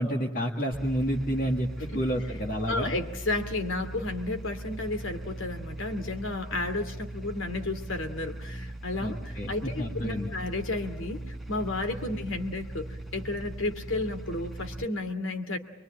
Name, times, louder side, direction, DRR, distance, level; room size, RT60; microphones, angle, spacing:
voice 1, 0.0-2.9 9.0-10.3, equal, 45° left, 1 dB, 1.7 m, -30 dB
sound 1, 0.7-14.8, right 1 dB, ahead, 1.7 m, -40 dB
voice 2, 2.7-15.6, left 2 dB, 80° left, 8 dB, 2.6 m, -32 dB
23.5 x 23.5 x 8.9 m, 0.98 s
head